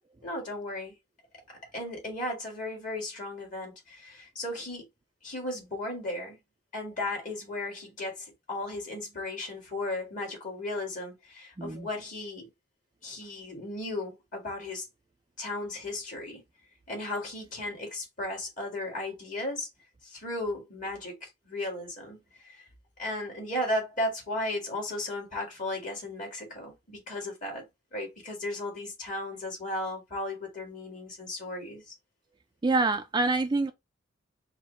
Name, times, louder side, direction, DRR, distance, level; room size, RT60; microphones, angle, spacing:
voice 1, 0.2-0.9 1.7-4.9 5.2-6.4 6.7-12.5 13.0-14.9 15.4-16.4 16.9-19.7 20.0-22.7 23.0-27.6 27.9-31.9, left 1 dB, 40° left, 2.2 m, -35 dB
voice 2, 11.6-11.9 32.6-33.7, right 3 dB, 20° right, 0.3 m, -26 dB
4.6 x 2.2 x 4.1 m
head